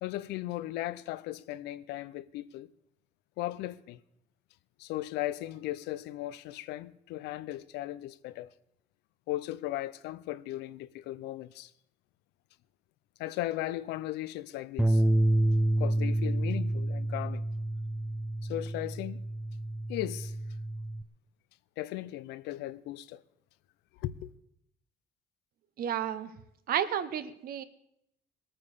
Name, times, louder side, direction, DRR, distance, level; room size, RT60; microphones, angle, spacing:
voice 1, 0.0-2.7 3.4-4.0 4.8-8.5 9.3-11.7 13.2-15.0 15.8-17.4 18.4-19.2 19.9-20.3 21.8-23.2 24.0-24.3, left 15 dB, 90° left, 0.6 m, -37 dB
Bass guitar, 14.8-21.0, right 1 dB, 5° right, 0.6 m, -29 dB
voice 2, 25.8-26.3 26.7-27.6, right 9 dB, 60° right, 1.1 m, -31 dB
19.5 x 9.0 x 6.6 m
cardioid pair, 110°, 17 cm